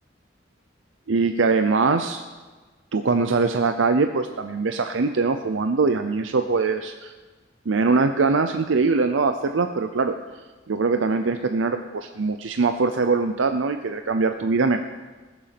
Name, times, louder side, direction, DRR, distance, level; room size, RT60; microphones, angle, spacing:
voice 1, 1.1-2.2 2.9-7.1 7.7-10.1 10.7-14.8, right 4 dB, 80° right, 7 dB, 0.6 m, -22 dB
20.0 x 7.1 x 5.9 m, 1.3 s
head